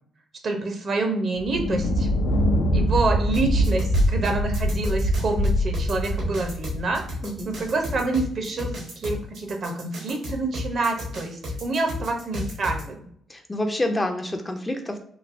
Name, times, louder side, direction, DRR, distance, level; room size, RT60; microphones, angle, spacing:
voice 1, 0.4-2.1 2.7-7.0 7.5-13.0, right 3 dB, 50° right, 3 dB, 0.7 m, -27 dB
Thunder, 1.4-8.0, equal, 80° left, 0.4 m, -24 dB
sound 1, 3.3-12.8, left 1 dB, 80° right, 1.2 m, -33 dB
voice 2, 13.3-15.0, left 1 dB, 20° left, 4 dB, 0.4 m, -28 dB
3.1 x 2.6 x 2.5 m, 0.65 s
cardioid pair, 90°, 0 cm